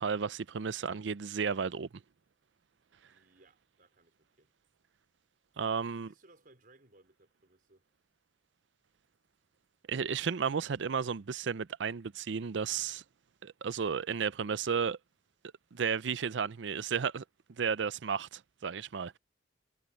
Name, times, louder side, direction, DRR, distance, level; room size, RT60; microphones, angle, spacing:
voice 1, 0.0-1.9 5.6-6.1 9.9-13.0 13.4-15.0 15.7-17.2 17.6-19.2, right 6 dB, 75° right, 0.5 m, -33 dB
voice 2, 3.1-4.5 5.8-7.9, right 2 dB, 50° right, 4.7 m, -63 dB
head